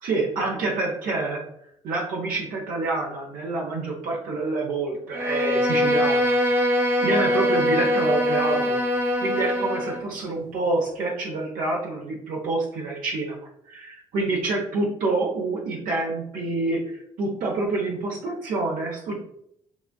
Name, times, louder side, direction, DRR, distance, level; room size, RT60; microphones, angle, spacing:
voice 1, 0.0-1.4 1.8-6.4 7.0-8.8 9.2-13.4 13.7-19.1, right 2 dB, 55° right, -1 dB, 0.9 m, -27 dB
Bowed string instrument, 5.1-10.1, left 1 dB, 15° right, 0.9 m, -23 dB
7.1 x 2.5 x 2.2 m, 0.71 s
figure-of-eight pair, 45°, 16 cm